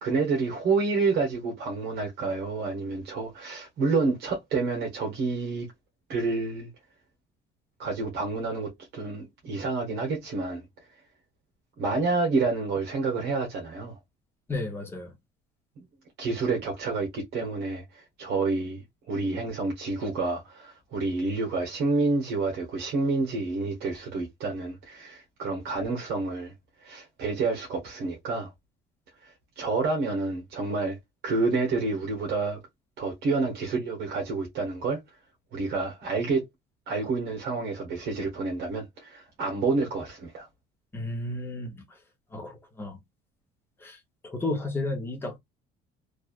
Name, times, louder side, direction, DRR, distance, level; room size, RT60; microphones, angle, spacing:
voice 1, 0.0-5.7 6.1-6.7 7.8-10.6 11.8-14.0 16.2-26.5 26.8-28.5 29.2-31.0 31.2-32.6 33.0-35.0 35.5-36.5 36.9-40.5, right 3 dB, 60° right, 1.2 m, -29 dB
voice 2, 14.5-15.1 40.9-41.7 42.3-42.5 42.8-43.0 43.8-44.0 44.3-45.4, left 2 dB, 10° left, 0.9 m, -32 dB
3.1 x 2.5 x 2.4 m
cardioid pair, 175°, 19 cm